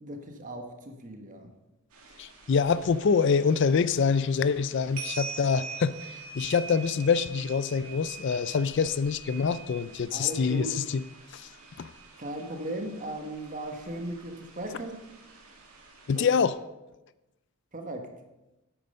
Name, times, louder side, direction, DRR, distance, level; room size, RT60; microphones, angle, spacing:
voice 1, 0.0-1.5 10.1-10.7 12.2-15.0 16.1-16.3 17.7-18.1, right 1 dB, 35° right, 4 dB, 1.3 m, -37 dB
sound 1, 1.9-16.5, right 4 dB, 80° right, 2.1 m, -45 dB
voice 2, 2.2-11.0 11.3-11.5 11.8-11.9 16.1-16.5, left 5 dB, 55° left, 15 dB, 0.4 m, -25 dB
9.5 x 8.8 x 5.4 m, 1.0 s
head